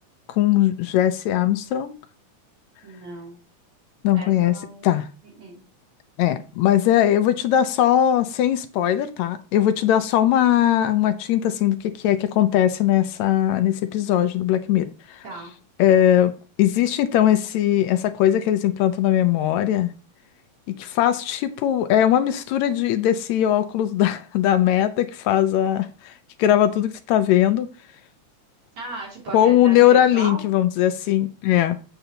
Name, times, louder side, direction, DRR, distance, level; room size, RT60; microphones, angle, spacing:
voice 1, 0.3-1.9 4.0-4.6 4.8-5.1 6.2-15.2 15.8-16.3 16.6-19.9 20.7-26.1 26.4-27.7 29.3-31.8, left 11 dB, 80° left, 10 dB, 1.8 m, -20 dB
voice 2, 2.8-3.4 4.1-5.0 5.3-5.6 15.2-15.5 28.7-30.4, right 2 dB, 65° right, -6 dB, 4.1 m, -36 dB
8.0 x 7.9 x 2.8 m, 0.35 s
omnidirectional pair, 3.5 m